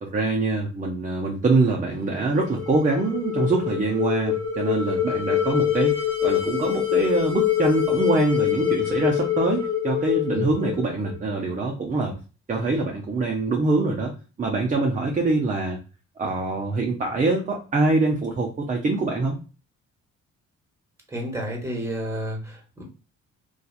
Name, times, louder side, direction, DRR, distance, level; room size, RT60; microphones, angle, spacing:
voice 1, 0.0-12.2 12.5-15.8 16.2-19.4, right 3 dB, 25° right, 0 dB, 0.5 m, -24 dB
sound 1, 2.2-11.4, left 11 dB, 45° left, 1.2 m, -25 dB
voice 2, 21.1-22.8, equal, 10° right, 0 dB, 1.0 m, -31 dB
2.7 x 2.3 x 2.3 m, 0.35 s
cardioid pair, 90°, 30 cm